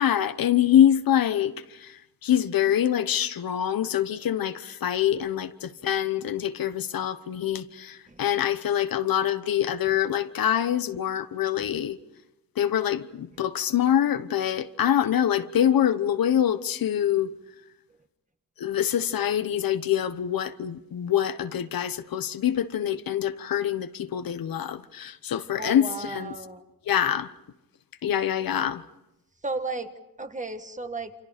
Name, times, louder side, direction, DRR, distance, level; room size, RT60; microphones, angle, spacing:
voice 1, 0.0-1.9 2.2-12.0 12.6-17.3 18.6-26.3 26.9-27.3 28.0-28.8, left 10 dB, 70° left, 1.1 m, -25 dB
voice 2, 25.5-26.6 29.4-31.1, right 3 dB, 20° right, 1.6 m, -34 dB
28.5 x 26.0 x 5.1 m
wide cardioid pair, 115°, 36 cm